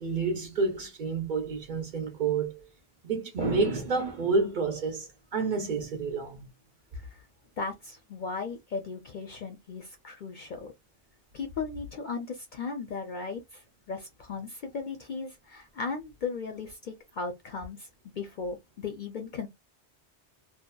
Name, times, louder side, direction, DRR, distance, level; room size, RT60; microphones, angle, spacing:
voice 1, 0.0-2.7 3.0-6.5, right 4 dB, 50° right, 0.7 m, -29 dB
voice 2, 7.6-10.7 11.3-17.9 18.2-19.5, left 4 dB, 60° left, 0.5 m, -37 dB
2.7 x 2.2 x 2.2 m
omnidirectional pair, 1.2 m